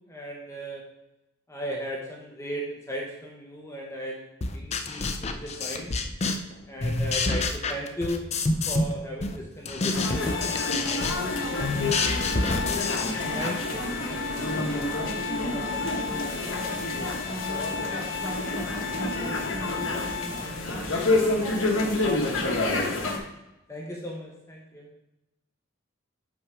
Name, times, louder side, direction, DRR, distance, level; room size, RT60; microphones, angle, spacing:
voice 1, 0.1-0.8 1.5-4.3 4.5-5.9 6.7-8.3 8.7-10.6 11.5-13.0 13.3-13.8 23.7-24.9, equal, 15° left, -1 dB, 0.9 m, -36 dB
sound 1, 4.4-6.5 6.8-8.9 9.2-13.6, left 3 dB, 30° left, 0.5 m, -28 dB
sound 2, 9.9-23.2, left 2 dB, 80° left, 1.4 m, -29 dB
Organ, 10.1-20.8, left 6 dB, 60° left, 1.0 m, -35 dB
voice 2, 13.0-21.7 22.3-23.2, right 1 dB, 15° right, 0 dB, 1.2 m, -40 dB
6.1 x 5.7 x 4.8 m, 0.92 s
head